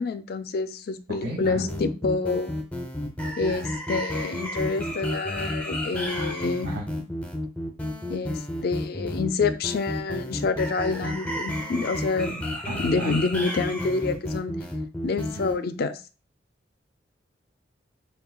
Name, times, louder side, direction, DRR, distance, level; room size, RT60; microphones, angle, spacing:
voice 1, 0.0-2.6 3.4-6.7 7.0-7.1 8.1-12.4 12.8-14.6 15.0-16.0, left 4 dB, 55° left, 0.4 m, -27 dB
voice 2, 1.2-1.5 6.1-6.3 6.6-6.8 12.3-13.2, right 1 dB, 85° right, 1.5 m, -35 dB
sound 1, 1.4-15.5, left 1 dB, 10° left, 0.7 m, -31 dB
5.6 x 2.3 x 2.3 m
head